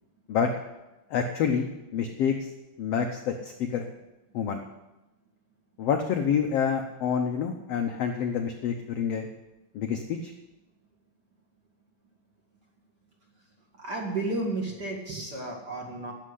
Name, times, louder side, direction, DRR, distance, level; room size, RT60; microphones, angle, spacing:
voice 1, 1.1-2.5 2.8-3.9 4.3-4.6 5.8-9.3 9.7-10.3, left 7 dB, 85° left, 4 dB, 1.3 m, -27 dB
voice 2, 13.8-16.1, right 2 dB, 40° right, -1 dB, 1.9 m, -32 dB
11.5 x 7.5 x 9.8 m, 1.0 s
omnidirectional pair, 4.0 m